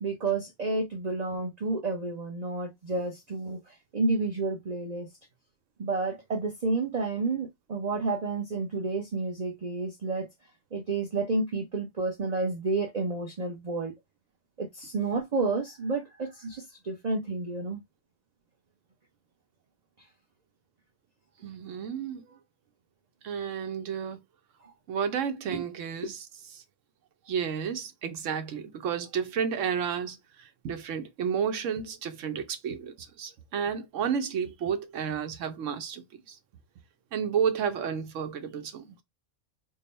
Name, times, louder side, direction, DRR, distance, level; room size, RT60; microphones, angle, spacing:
voice 1, 0.0-5.1 5.8-10.3 10.7-13.9 14.6-17.8 24.6-24.7 25.5-25.6, right 3 dB, 40° right, 0.8 m, -30 dB
voice 2, 21.4-22.2 23.2-24.2 24.9-26.2 27.3-36.4 37.1-38.9, right 7 dB, 80° right, 1.1 m, -31 dB
3.8 x 2.1 x 3.9 m
omnidirectional pair, 1.3 m